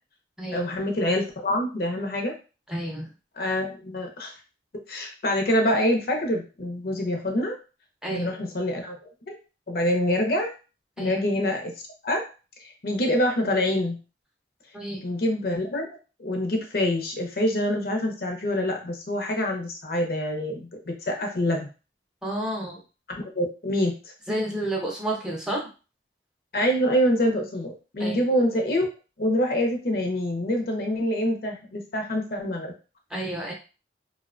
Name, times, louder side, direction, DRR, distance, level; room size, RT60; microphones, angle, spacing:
voice 1, 0.5-2.3 3.4-4.3 4.9-7.6 8.1-9.0 9.3-9.4 9.7-10.5 11.0-11.7 12.0-12.2 12.6-14.0 15.0-15.9 16.2-21.7 23.3-24.1 26.5-28.9 29.2-32.7, left 1 dB, 55° left, 2 dB, 0.5 m, -25 dB
voice 2, 2.7-3.1 8.0-8.4 11.0-11.2 14.7-15.0 22.2-22.8 24.3-25.7 28.0-28.3 33.1-33.5, right 1 dB, 5° right, -2 dB, 0.4 m, -30 dB
2.7 x 2.1 x 2.4 m, 0.33 s
head